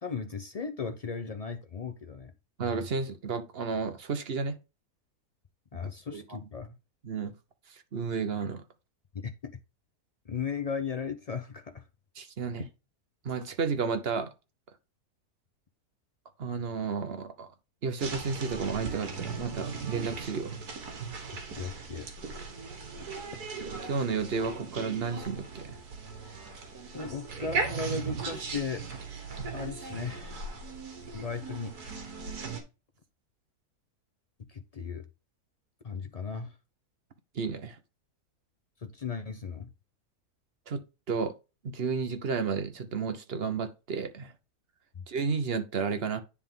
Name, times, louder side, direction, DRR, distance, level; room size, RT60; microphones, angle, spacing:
voice 1, 0.0-2.3 5.7-6.7 9.2-9.6 10.3-11.9 21.6-22.1 26.9-28.8 29.5-30.6 31.1-32.0 34.5-35.0 35.8-36.6 38.8-39.7 44.9-45.0, left 5 dB, 80° left, 0.3 m, -36 dB
voice 2, 2.6-4.6 6.1-6.2 7.0-7.3 7.9-8.6 12.2-12.6 13.2-14.3 16.4-17.5 17.8-20.6 23.6-25.8 37.3-37.8 40.7-40.8 41.1-41.3 41.6-44.3 45.1-46.2, right 5 dB, 45° right, 1.0 m, -32 dB
sound 1, 18.0-32.6, right 4 dB, 80° right, 1.9 m, -38 dB
10.0 x 3.6 x 3.6 m
omnidirectional pair, 1.6 m